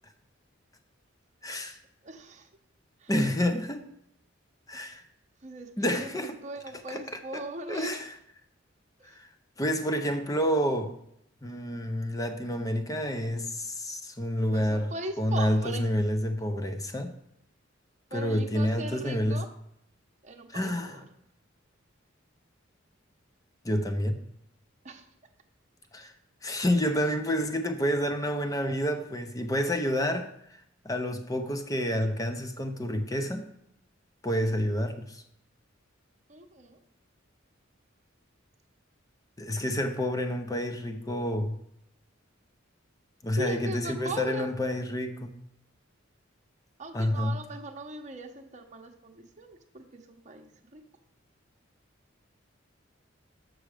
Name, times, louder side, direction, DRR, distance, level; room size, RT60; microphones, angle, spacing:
voice 1, 1.4-1.8 3.1-3.8 4.7-5.0 5.8-6.3 6.9-7.0 7.3-7.4 7.7-8.1 9.1-9.3 9.6-10.9 11.4-14.9 15.2-17.1 18.1-19.4 20.5-21.0 23.6-24.2 25.9-26.1 26.4-30.3 30.8-33.5 34.2-35.2 39.4-41.6 43.2-45.4 46.9-47.4, equal, 20° left, 7 dB, 0.7 m, -29 dB
voice 2, 2.0-2.5 3.0-3.1 5.4-8.0 9.0-9.2 14.4-15.9 18.1-19.5 20.2-21.0 24.8-25.1 29.6-30.0 36.3-36.8 43.4-44.5 46.8-50.8, right 2 dB, 35° right, 3 dB, 0.9 m, -39 dB
7.0 x 6.3 x 5.0 m, 0.74 s
head